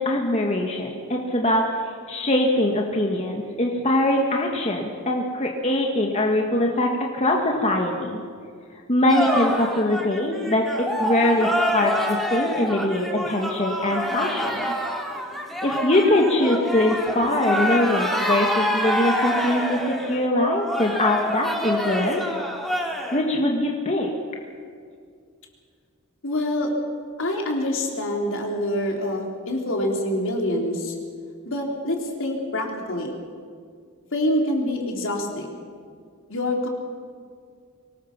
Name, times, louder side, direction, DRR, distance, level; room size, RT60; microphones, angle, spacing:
voice 1, 0.0-8.2 8.9-10.6 11.0-14.7 15.6-22.2 23.1-24.1, left 1 dB, 30° left, 0 dB, 1.7 m, -22 dB
sound 1, 9.1-23.2, equal, ahead, 2.5 m, -26 dB
voice 2, 26.2-26.7 27.2-31.0 31.5-33.2 34.1-35.6 36.3-36.7, left 1 dB, 65° left, 1 dB, 3.5 m, -26 dB
24.0 x 19.5 x 6.0 m, 2.1 s
head